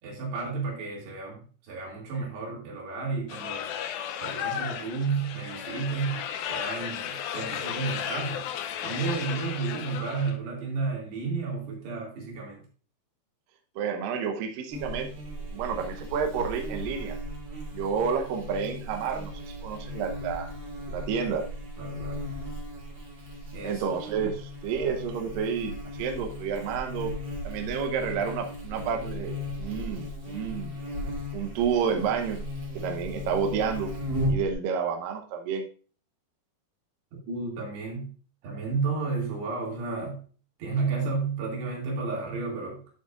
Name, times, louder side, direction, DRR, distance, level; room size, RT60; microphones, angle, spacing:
voice 1, 0.0-3.7 4.2-6.2 6.5-8.5 8.8-12.6 21.8-22.2 23.5-23.8 24.2-24.3 37.3-38.1 38.4-40.2 40.6-42.8, right 4 dB, 90° right, -2 dB, 4.7 m, -32 dB
sound 1, 3.3-10.3, left 9 dB, 80° left, 2.3 m, -34 dB
voice 2, 13.8-15.1 15.5-17.1 17.7-20.5 20.9-21.4 23.6-27.1 27.4-30.8 31.3-32.4 32.7-33.9 34.3-35.7, right 6 dB, 70° right, 4 dB, 2.4 m, -30 dB
Buzz, 14.7-34.5, left 1 dB, 35° right, 1.6 m, -36 dB
12.0 x 6.8 x 2.5 m, 0.40 s
omnidirectional pair, 4.6 m